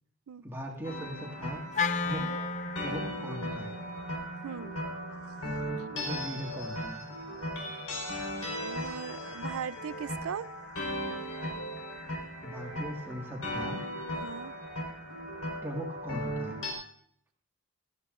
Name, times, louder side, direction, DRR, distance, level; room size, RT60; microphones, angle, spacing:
voice 1, 0.4-1.6 2.0-2.4 2.8-3.8 5.6-7.0 12.4-13.8 15.6-16.6, equal, 10° right, 1.6 m, -40 dB
sound 1, 0.8-16.7, equal, 85° left, 4.2 m, -37 dB
Wind instrument woodwind instrument, 1.7-6.0, left 4 dB, 35° left, 0.5 m, -36 dB
voice 2, 8.6-10.5 14.2-14.5, right 7 dB, 80° right, 0.4 m, -39 dB
17.0 x 13.5 x 2.5 m
head